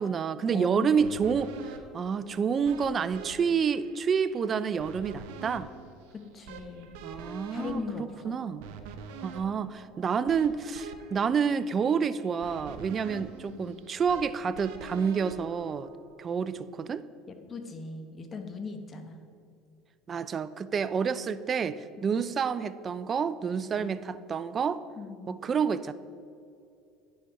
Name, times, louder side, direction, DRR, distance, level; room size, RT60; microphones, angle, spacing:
voice 1, 0.0-5.7 7.0-8.6 9.2-15.9 16.2-17.0 20.1-24.8 25.3-25.9, right 6 dB, 30° right, 15 dB, 0.4 m, -29 dB
voice 2, 0.5-0.9 6.1-6.9 7.5-8.4 13.5-13.8 17.3-19.2 22.0-22.2 23.6-23.9 25.0-25.4, left 4 dB, 30° left, 6 dB, 1.0 m, -39 dB
sound 1, 1.0-16.2, right 4 dB, 75° right, 0.8 m, -46 dB
9.9 x 6.3 x 4.7 m, 2.5 s
supercardioid pair, 110°, 0 cm